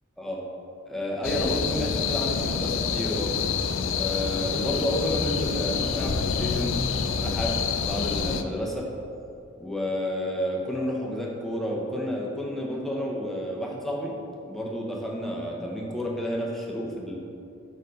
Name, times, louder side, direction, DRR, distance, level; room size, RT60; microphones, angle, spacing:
voice 1, 0.9-3.4 3.9-6.8 7.2-8.9 9.6-14.1 14.5-17.2, equal, ahead, -3 dB, 0.8 m, -30 dB
sound 1, 1.2-8.4, left 6 dB, 65° left, 0.4 m, -27 dB
5.2 x 4.7 x 6.3 m, 2.7 s
head